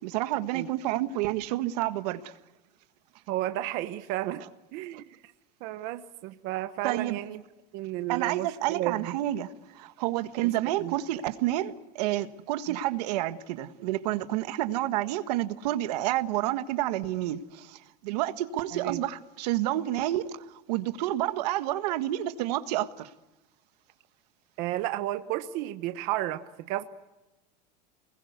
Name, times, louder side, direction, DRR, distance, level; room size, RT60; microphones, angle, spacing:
voice 1, 0.0-2.3 4.9-5.0 6.8-7.2 8.1-23.1, right 14 dB, 70° right, 1.6 m, -29 dB
voice 2, 3.3-4.4 4.7-5.2 5.6-7.4 7.7-9.2 10.8-10.9 12.7-12.8 18.7-19.0 24.6-26.8, right 15 dB, 45° right, 1.2 m, -32 dB
29.0 x 21.5 x 8.2 m
supercardioid pair, 175°, 21 cm